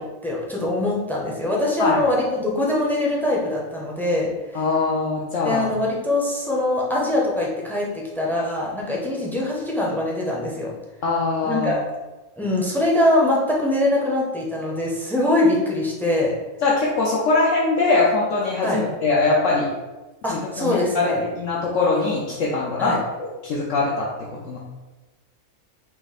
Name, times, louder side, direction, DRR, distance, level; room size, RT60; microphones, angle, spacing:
voice 1, 0.0-4.6 5.4-7.9 8.1-10.7 11.4-11.8 12.4-16.3 18.6-18.8 20.2-21.2 22.8-23.0, left 1 dB, ahead, -3 dB, 0.6 m, -23 dB
voice 2, 4.5-5.7 11.0-11.7 16.6-19.7 20.3-22.9 23.2-24.1 24.5-24.6, left 3 dB, 70° left, -5 dB, 1.1 m, -22 dB
5.7 x 2.2 x 4.2 m, 1.1 s
omnidirectional pair, 1.4 m